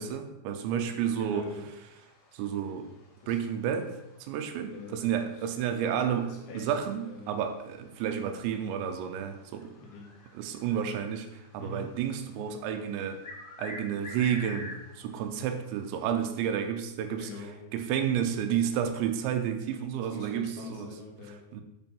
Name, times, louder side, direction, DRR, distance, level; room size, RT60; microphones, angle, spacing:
voice 1, 0.0-1.5 2.3-2.9 3.3-3.9 4.2-9.7 10.3-13.2 13.6-17.3 17.7-20.9 21.5-21.6, right 8 dB, 85° right, 7 dB, 3.0 m, -31 dB
sound 1, 0.7-16.7, left 2 dB, 60° left, 1.4 m, -50 dB
voice 2, 0.9-1.7 3.2-3.4 4.7-5.0 5.4-5.5 6.2-7.4 9.8-10.1 11.6-11.9 17.2-17.7 19.9-21.5, left 3 dB, 75° left, -2 dB, 4.2 m, -44 dB
10.5 x 4.5 x 5.4 m, 0.90 s
omnidirectional pair, 5.2 m